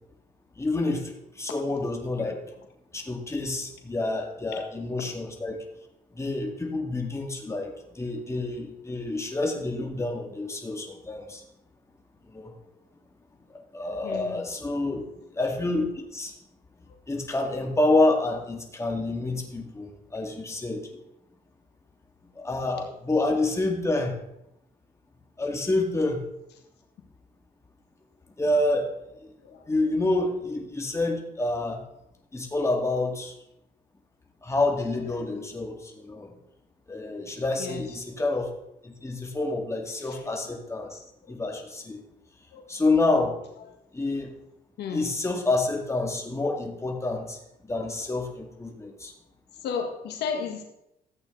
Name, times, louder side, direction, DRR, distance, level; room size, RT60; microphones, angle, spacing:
voice 1, 0.6-1.1 1.4-2.4 2.9-5.6 6.2-11.4 12.3-12.5 13.7-15.1 15.3-16.3 17.1-20.8 22.4-24.2 25.4-26.2 28.4-28.9 29.7-31.8 32.3-33.3 34.4-36.3 36.9-38.5 38.8-41.0 41.3-42.0 42.7-43.3 43.9-44.3 44.9-47.4 47.7-49.1, left 2 dB, 15° left, 1 dB, 2.2 m, -28 dB
voice 2, 14.0-14.4 29.4-29.6 37.6-37.8 40.0-40.3 42.5-42.6 44.8-45.1 49.6-50.6, left 6 dB, 85° left, 3 dB, 1.7 m, -33 dB
14.5 x 8.3 x 3.9 m, 0.84 s
cardioid pair, 95°, 17 cm